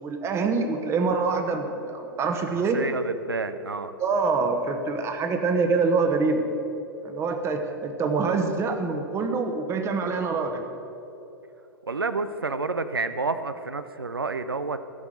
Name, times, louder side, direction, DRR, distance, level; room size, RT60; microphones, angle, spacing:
voice 1, 0.0-2.8 4.0-6.5 7.0-10.7, right 4 dB, 25° right, 5 dB, 1.1 m, -25 dB
voice 2, 2.5-3.9 11.8-14.8, right 3 dB, 80° right, 11 dB, 0.6 m, -29 dB
15.5 x 6.2 x 7.7 m, 3.0 s
figure-of-eight pair, 100°, 12 cm